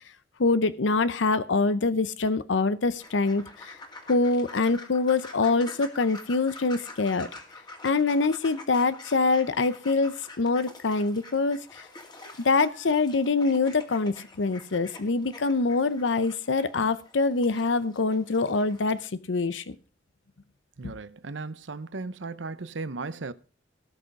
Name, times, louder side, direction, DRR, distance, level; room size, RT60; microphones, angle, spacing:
voice 1, 0.4-3.8 4.1-7.3 7.8-11.9 12.4-19.8, left 3 dB, 80° left, 0.7 m, -25 dB
sound 1, 3.0-19.0, left 2 dB, 25° left, 2.3 m, -47 dB
voice 2, 20.8-23.3, right 3 dB, 75° right, 0.8 m, -36 dB
18.0 x 6.3 x 5.3 m
head